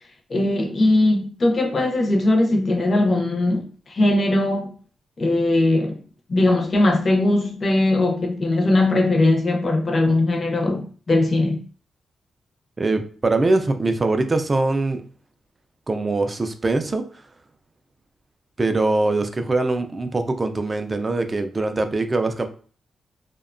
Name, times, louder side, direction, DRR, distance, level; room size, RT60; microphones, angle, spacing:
voice 1, 0.3-4.7 5.2-6.0 6.3-11.6, left 2 dB, 40° left, 0.5 m, -20 dB
voice 2, 12.8-15.0 15.9-17.0 18.6-22.5, right 2 dB, 25° right, 0.3 m, -22 dB
2.7 x 2.1 x 2.4 m
wide cardioid pair, 135°, 0 cm